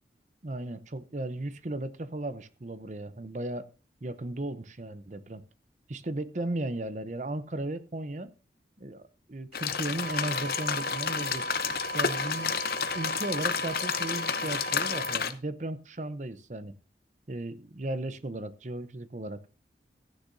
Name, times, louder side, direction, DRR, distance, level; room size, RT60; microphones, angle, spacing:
voice 1, 0.4-3.7 4.0-5.4 5.9-8.3 8.8-9.0 9.3-11.5 11.9-12.6 12.9-16.8 17.3-19.4, right 1 dB, 45° right, 13 dB, 0.8 m, -35 dB
sound 1, 9.5-15.3, left 6 dB, 55° left, 0.8 m, -31 dB
sound 2, 10.0-15.2, right 2 dB, 85° right, 1.0 m, -38 dB
14.5 x 10.0 x 2.7 m, 0.33 s
head